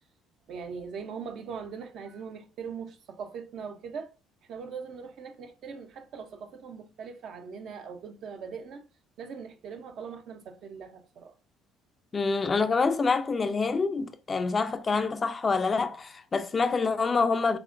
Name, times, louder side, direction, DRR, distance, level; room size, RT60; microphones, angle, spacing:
voice 1, 0.5-4.1 4.5-8.8 9.2-11.3, right 6 dB, 60° right, 0.7 m, -41 dB
voice 2, 12.1-17.6, left 4 dB, 35° left, 0.5 m, -26 dB
5.9 x 2.1 x 2.5 m
hypercardioid pair, 65°, 0 cm